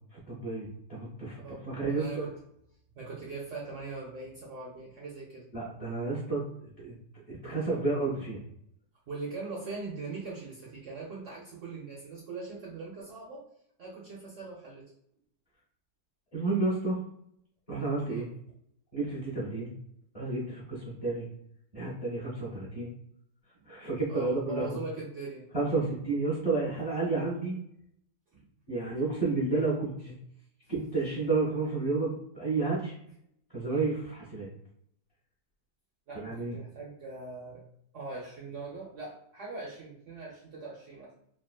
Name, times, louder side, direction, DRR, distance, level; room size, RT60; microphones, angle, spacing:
voice 1, 0.1-2.2 5.5-7.0 7.3-8.4 16.3-17.0 17.7-18.3 18.9-19.7 20.1-21.3 21.7-22.9 23.7-24.8 25.5-27.6 28.7-30.2 30.7-32.9 33.5-34.5 36.1-36.5, right 3 dB, 25° left, -9 dB, 0.9 m, -31 dB
voice 2, 1.4-2.4 2.9-5.5 9.1-13.4 13.8-14.9 18.1-18.3 24.1-25.5 36.1-37.6 37.9-41.1, right 3 dB, 65° right, -3 dB, 0.7 m, -41 dB
3.5 x 2.2 x 2.3 m, 0.72 s
omnidirectional pair, 1.9 m